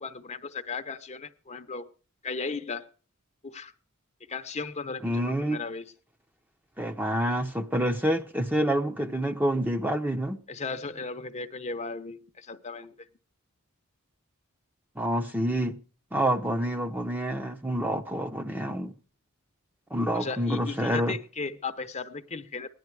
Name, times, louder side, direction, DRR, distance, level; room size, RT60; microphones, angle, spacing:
voice 1, 0.0-1.9 2.2-2.9 3.4-3.7 4.3-5.9 10.5-13.1 20.1-22.7, left 4 dB, 30° left, 0.9 m, -36 dB
voice 2, 5.0-5.6 6.8-10.4 15.0-15.8 16.1-18.9 19.9-21.2, right 1 dB, 10° right, 0.8 m, -27 dB
17.0 x 11.0 x 4.7 m
head